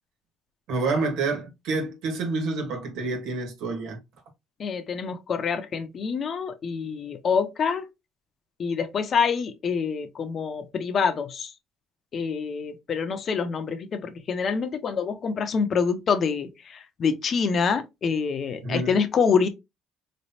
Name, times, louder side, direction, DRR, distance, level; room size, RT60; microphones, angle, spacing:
voice 1, 0.7-4.0 18.6-18.9, right 3 dB, 80° right, 1.6 m, -28 dB
voice 2, 4.6-7.9 8.6-11.5 12.1-19.5, left 6 dB, 50° left, 0.8 m, -26 dB
4.0 x 3.3 x 2.7 m
supercardioid pair, 85°, 0 cm